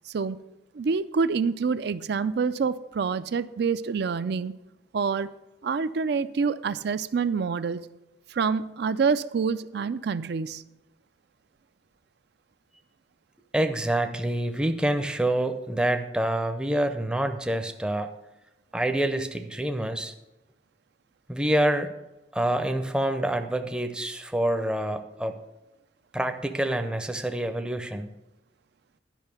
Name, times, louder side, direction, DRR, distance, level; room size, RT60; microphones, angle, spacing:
voice 1, 0.1-0.4 0.7-4.5 4.9-5.3 5.6-7.9 8.3-10.6, right 5 dB, 60° right, 14 dB, 0.4 m, -27 dB
voice 2, 13.5-18.1 18.7-20.1 21.3-21.9 22.3-25.4 26.1-28.1, right 1 dB, 5° right, 7 dB, 0.6 m, -27 dB
11.0 x 5.6 x 6.8 m, 0.98 s
head